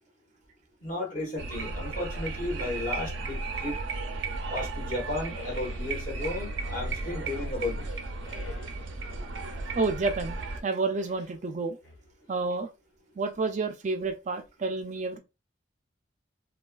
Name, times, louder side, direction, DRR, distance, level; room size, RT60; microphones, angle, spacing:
voice 1, 0.8-3.8 4.5-7.9, left 2 dB, 45° left, 1.3 m, -34 dB
sound 1, 1.4-10.6, right 3 dB, 90° right, 0.5 m, -35 dB
sound 2, 5.3-6.0 6.5-7.7 8.2-9.0 10.9-11.4 11.8-12.5, left 2 dB, 80° left, 1.5 m, -50 dB
voice 2, 9.8-11.8 12.3-12.7 13.2-15.2, right 3 dB, 40° right, 0.4 m, -30 dB
3.3 x 2.3 x 2.3 m
head